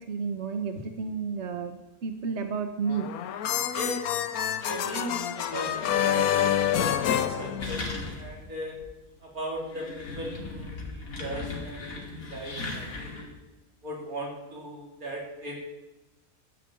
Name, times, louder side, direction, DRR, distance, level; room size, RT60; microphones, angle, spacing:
voice 1, 0.0-3.1, right 5 dB, 55° right, 6 dB, 1.2 m, -32 dB
sound 1, 2.9-8.2, left 10 dB, 85° left, 1.2 m, -27 dB
voice 2, 4.6-8.8 9.2-13.3 13.8-15.6, right 1 dB, 75° right, -1 dB, 3.9 m, -38 dB
sound 2, 7.6-8.4 8.8-8.9 9.5-13.3, left 3 dB, 70° left, 2.9 m, -37 dB
12.5 x 9.8 x 8.6 m, 1.0 s
omnidirectional pair, 1.5 m